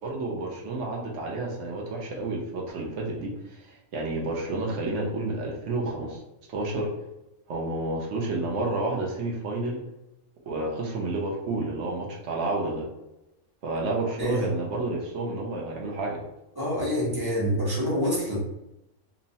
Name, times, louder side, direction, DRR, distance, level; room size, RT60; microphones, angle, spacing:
voice 1, 0.0-6.2 6.5-6.9 7.5-9.8 10.4-12.9 13.6-16.2, right 2 dB, 65° right, -2 dB, 0.9 m, -30 dB
voice 2, 16.6-18.4, equal, 25° right, -6 dB, 0.6 m, -26 dB
3.0 x 2.0 x 2.7 m, 0.92 s
omnidirectional pair, 1.5 m